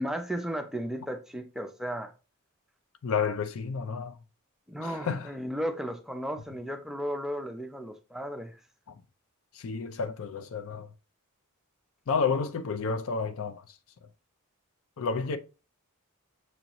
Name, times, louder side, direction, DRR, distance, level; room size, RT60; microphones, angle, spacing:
voice 1, 0.0-2.1 4.7-8.6, equal, ahead, 0.4 m, -34 dB
voice 2, 3.0-4.2 4.8-5.3 8.9-9.0 9.5-10.9 12.1-13.8 14.0-14.1 15.0-15.4, left 5 dB, 65° left, 0.4 m, -31 dB
6.2 x 2.6 x 2.9 m
head